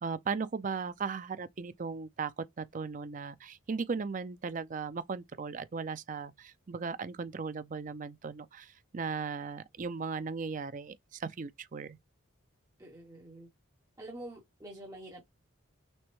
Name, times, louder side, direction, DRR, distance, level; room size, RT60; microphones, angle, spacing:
voice 1, 0.0-12.0, right 5 dB, 35° right, 0.4 m, -37 dB
voice 2, 12.8-13.5 14.0-15.2, right 1 dB, 15° right, 1.0 m, -46 dB
6.1 x 2.1 x 3.0 m
head